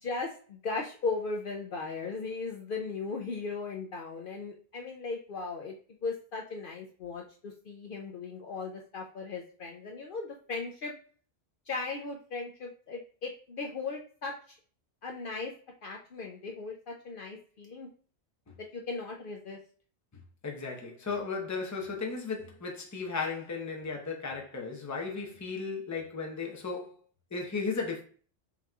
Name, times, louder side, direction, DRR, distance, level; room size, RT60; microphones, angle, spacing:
voice 1, 0.0-5.8 6.0-10.9 11.7-14.6 15.0-15.5 15.8-17.9 18.6-19.6, left 4 dB, 60° left, 0.7 m, -37 dB
voice 2, 20.4-26.9 27.3-28.0, left 4 dB, 20° left, 0.7 m, -35 dB
5.8 x 2.9 x 2.3 m
omnidirectional pair, 1.2 m